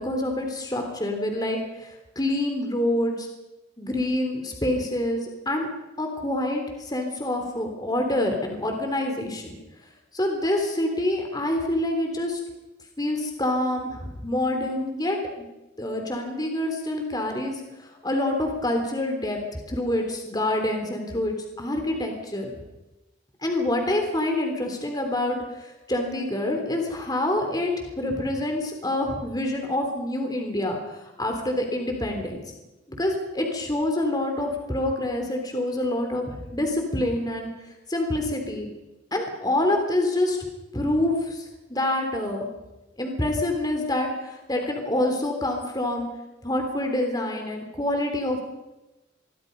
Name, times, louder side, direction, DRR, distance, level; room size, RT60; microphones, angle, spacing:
voice 1, 0.0-3.3 3.8-5.7 6.0-9.6 10.1-12.4 13.0-15.2 15.8-22.5 23.4-32.4 32.9-38.7 39.1-40.4 40.7-42.5 43.0-46.1 46.4-48.4, left 1 dB, 20° left, 3 dB, 3.5 m, -27 dB
26.5 x 23.0 x 5.4 m, 1.0 s
head